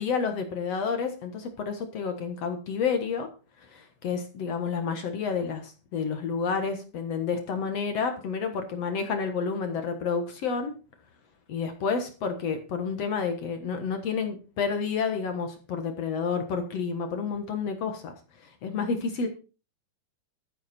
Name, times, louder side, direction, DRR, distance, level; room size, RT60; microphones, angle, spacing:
voice 1, 0.0-3.3 3.7-10.7 11.5-18.1 18.6-19.3, left 5 dB, 55° left, 6 dB, 2.4 m, -30 dB
12.5 x 10.5 x 4.4 m, 0.34 s
omnidirectional pair, 3.7 m